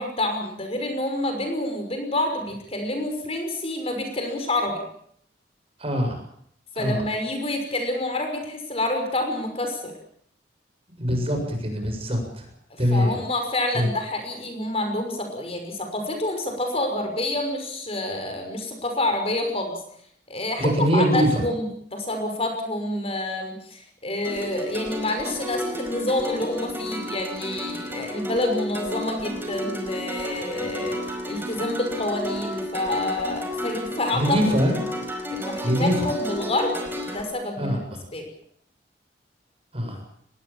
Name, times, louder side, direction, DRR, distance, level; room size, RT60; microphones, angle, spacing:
voice 1, 0.0-4.8 6.8-9.9 12.7-19.8 20.3-21.6 21.9-31.0 31.3-34.4 35.3-36.7 37.1-37.8 38.1-38.2, left 1 dB, 35° left, 5 dB, 5.9 m, -28 dB
voice 2, 5.8-6.2 6.8-7.0 11.0-12.5 12.8-13.2 13.7-13.9 20.6-21.4 34.1-34.8 35.6-36.1 37.6-37.8 39.7-40.0, equal, 35° right, 4 dB, 7.4 m, -23 dB
sound 1, 24.2-37.2, left 1 dB, 15° right, 5.0 m, -32 dB
24.0 x 21.0 x 7.4 m, 0.66 s
head